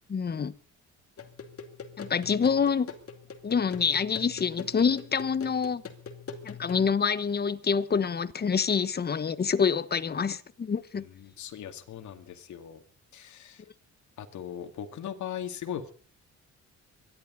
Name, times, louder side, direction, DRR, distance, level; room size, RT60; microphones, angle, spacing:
voice 1, 0.1-0.5 2.0-2.9 3.4-5.8 6.4-11.0, left 6 dB, 35° left, 1.1 m, -26 dB
sound 1, 1.2-6.9, left 5 dB, 50° left, 2.5 m, -43 dB
voice 2, 11.1-12.8 13.1-13.6 14.2-15.9, left 9 dB, 70° left, 2.4 m, -39 dB
24.0 x 12.0 x 4.0 m
cardioid pair, 90°, 30 cm